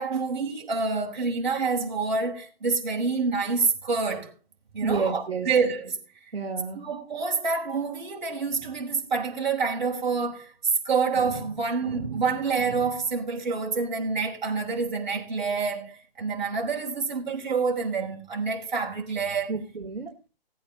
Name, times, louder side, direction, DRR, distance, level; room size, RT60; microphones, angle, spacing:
voice 1, 0.0-4.3 4.7-6.0 6.7-10.5 10.8-19.5, right 4 dB, 50° right, 5.3 m, -27 dB
voice 2, 4.8-5.5 6.3-6.8 19.5-20.3, right 4 dB, 70° right, 3.1 m, -30 dB
18.5 x 8.6 x 4.0 m
hypercardioid pair, 175°, 31 cm